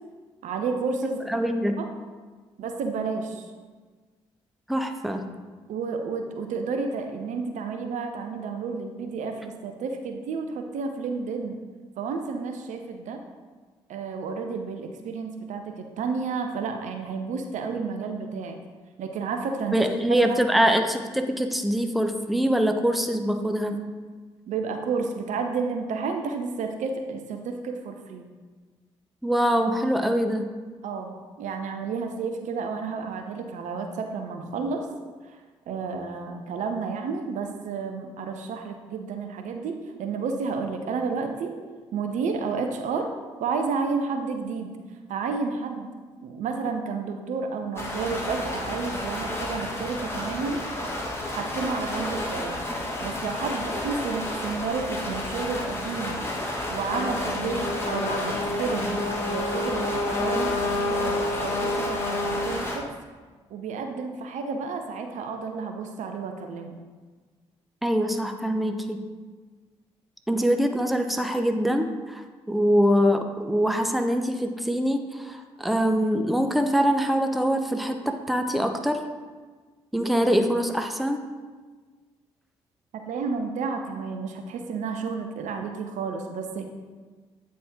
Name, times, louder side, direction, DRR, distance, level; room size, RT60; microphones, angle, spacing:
voice 1, 0.4-1.2 1.8-1.9 2.6-3.5 5.7-11.6 12.0-13.2 13.9-18.6 19.0-20.4 24.5-28.3 30.8-34.9 35.7-41.5 41.9-43.1 43.4-44.7 45.1-45.9 46.2-50.7 51.3-52.6 53.0-56.2 56.7-62.8 63.5-66.8 83.1-86.6, right 4 dB, 60° right, 5 dB, 0.7 m, -31 dB
voice 2, 1.3-1.7 4.7-5.2 19.7-23.8 29.2-30.5 67.8-69.0 70.3-72.2 72.5-79.0 79.9-81.3, equal, ahead, 6 dB, 0.7 m, -24 dB
sound 1, 47.8-62.8, left 1 dB, 20° left, 1.7 m, -31 dB
Trumpet, 56.9-62.5, left 2 dB, 50° left, 1.1 m, -29 dB
8.5 x 4.3 x 3.6 m, 1.4 s
hypercardioid pair, 40°, 14 cm